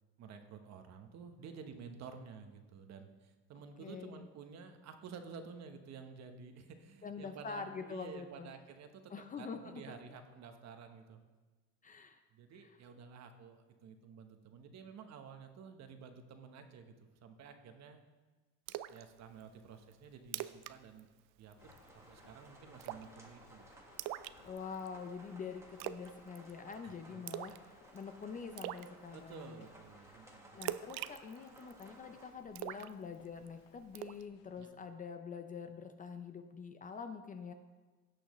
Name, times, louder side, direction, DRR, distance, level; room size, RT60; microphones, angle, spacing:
voice 1, 0.2-11.2 12.3-18.0 18.9-21.1 21.4-23.7 26.8-27.6 29.1-30.6 32.8-32.9 34.6-34.7, right 6 dB, 50° right, 6 dB, 1.0 m, -52 dB
voice 2, 3.8-4.3 7.0-8.5 9.1-10.2 11.8-12.2 12.6-12.8 24.4-29.7 30.0-37.5, left 5 dB, 25° left, 7 dB, 0.5 m, -46 dB
Splash splatter, 18.7-19.0 19.4-19.5 19.9-20.0 20.3-20.7 21.0-21.2 21.5-21.9 22.8-23.2 24.0-24.9 25.8-26.1 26.4-26.7 27.3-27.7 28.0-28.1 28.6-28.9 30.6-31.9 32.6-33.5 34.0-34.2, right 14 dB, 75° right, 0.5 m, -42 dB
sound 1, 21.6-34.6, left 8 dB, 75° left, 0.8 m, -66 dB
sound 2, 21.6-32.3, right 1 dB, 10° right, 1.4 m, -59 dB
17.0 x 6.2 x 3.1 m, 1.3 s
cardioid pair, 135°, 34 cm